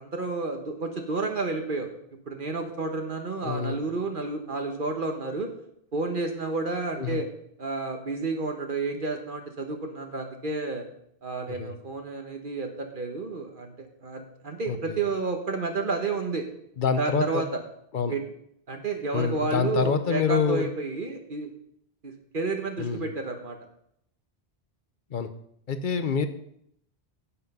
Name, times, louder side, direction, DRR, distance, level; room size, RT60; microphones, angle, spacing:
voice 1, 0.0-1.9 2.3-5.5 5.9-7.3 7.6-10.8 11.2-16.4 17.0-17.5 18.1-18.3 18.7-21.5 22.0-23.6, right 3 dB, 55° right, 4 dB, 1.3 m, -31 dB
voice 2, 3.4-3.8 7.0-7.2 11.5-11.7 14.7-15.0 16.8-17.4 17.9-18.1 19.1-20.7 22.8-23.1 25.1-25.3 25.7-26.3, left 6 dB, 50° left, 10 dB, 0.9 m, -26 dB
9.9 x 8.2 x 5.4 m, 0.72 s
omnidirectional pair, 1.1 m